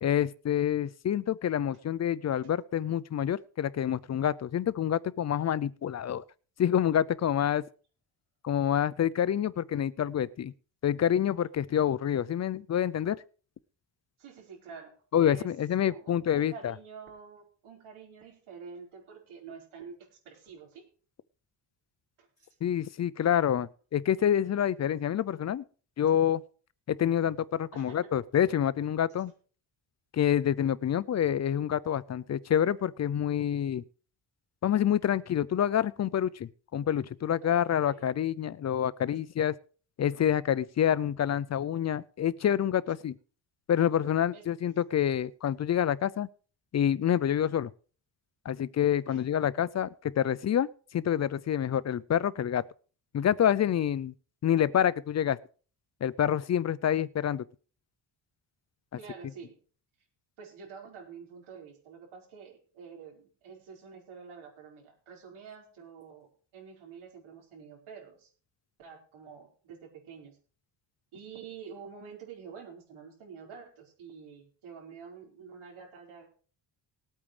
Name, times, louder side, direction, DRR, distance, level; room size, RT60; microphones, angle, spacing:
voice 1, 0.0-6.2 6.6-7.6 8.4-10.5 10.8-13.2 15.1-16.7 22.6-25.6 26.0-26.4 26.9-29.3 30.1-33.8 34.6-39.5 40.0-43.2 43.7-46.3 46.7-47.7 48.5-52.6 53.1-54.1 54.4-55.4 56.0-57.4, left 10 dB, 35° left, 18 dB, 0.4 m, -27 dB
voice 2, 14.2-15.5 15.8-20.9 22.2-22.6 27.7-28.1 37.4-38.1 44.3-44.4 49.1-49.2 59.0-59.5 60.4-68.3 68.8-70.4 71.1-76.3, right 6 dB, 85° right, 0 dB, 4.8 m, -48 dB
20.0 x 8.8 x 3.2 m, 0.40 s
wide cardioid pair, 165°, 47 cm